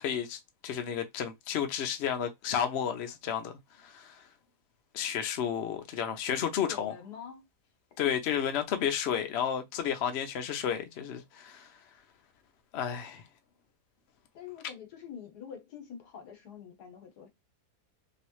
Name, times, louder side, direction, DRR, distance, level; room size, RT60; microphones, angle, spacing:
voice 1, 0.0-4.2 4.9-6.9 8.0-11.7 12.7-13.2, left 8 dB, 60° left, 0.7 m, -32 dB
voice 2, 6.3-7.4 8.0-8.1 14.3-17.3, left 8 dB, 80° left, 1.5 m, -46 dB
3.1 x 2.7 x 3.0 m
omnidirectional pair, 1.7 m